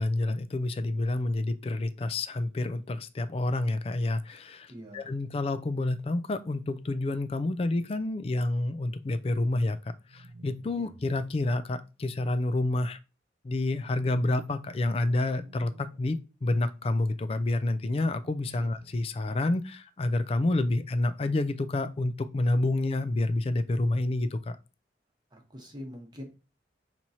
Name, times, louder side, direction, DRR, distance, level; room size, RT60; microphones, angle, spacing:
voice 1, 0.0-13.0 13.4-24.5, left 2 dB, 30° left, 0.3 m, -29 dB
voice 2, 4.7-5.2 10.8-10.9 18.6-18.7 22.7-22.8 25.3-26.2, equal, 25° right, 0.9 m, -44 dB
sound 1, 10.1-11.5 13.8-14.9 15.3-16.0 17.7-18.9, right 2 dB, 70° right, 0.5 m, -53 dB
5.9 x 3.0 x 2.7 m
head